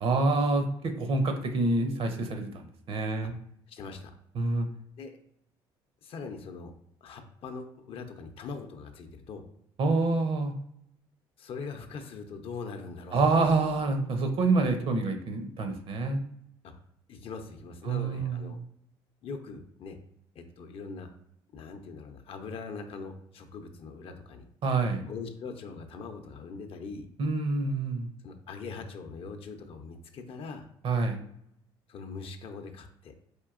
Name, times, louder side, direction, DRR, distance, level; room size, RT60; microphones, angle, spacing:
voice 1, 0.0-3.3 4.4-4.7 9.8-10.6 13.1-16.2 17.9-18.5 24.6-25.0 27.2-28.1 30.8-31.2, right 3 dB, 55° right, 6 dB, 0.7 m, -27 dB
voice 2, 3.7-4.1 5.0-5.2 6.0-6.7 7.0-9.4 11.4-13.3 16.6-16.7 17.1-18.6 19.2-20.0 20.3-21.1 21.5-24.4 25.0-27.1 28.2-30.7 31.9-33.1, left 4 dB, 55° left, 6 dB, 0.5 m, -41 dB
4.4 x 2.7 x 2.4 m, 0.72 s
supercardioid pair, 80°, 11 cm